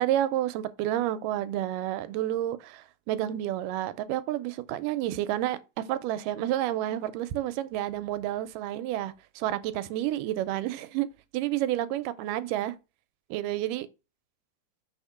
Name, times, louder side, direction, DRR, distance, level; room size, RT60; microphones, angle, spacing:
voice 1, 0.0-5.6 5.9-11.1 11.3-12.8 13.3-13.9, right 13 dB, 90° right, 2.3 m, -30 dB
6.2 x 3.6 x 5.6 m
omnidirectional pair, 3.7 m